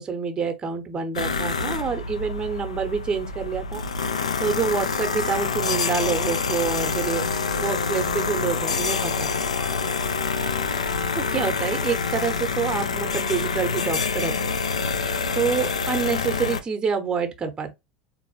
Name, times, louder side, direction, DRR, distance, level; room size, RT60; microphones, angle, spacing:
voice 1, 0.0-3.8 4.4-7.2 7.6-9.3 11.1-14.6 15.3-17.7, right 6 dB, 25° right, 0.7 m, -27 dB
sound 1, 1.1-16.6, left 5 dB, 85° left, 0.4 m, -26 dB
3.7 x 2.6 x 2.8 m
hypercardioid pair, 80°, 3 cm